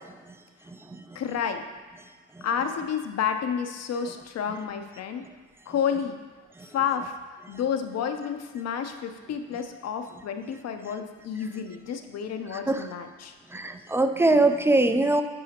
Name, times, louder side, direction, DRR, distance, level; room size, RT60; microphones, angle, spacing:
voice 1, 1.1-1.6 2.4-5.2 5.7-6.2 6.7-13.3, left 7 dB, 55° left, 7 dB, 0.6 m, -30 dB
voice 2, 13.5-15.2, right 2 dB, 10° right, 8 dB, 0.4 m, -22 dB
8.9 x 4.8 x 2.9 m, 1.3 s
cardioid pair, 90°, 30 cm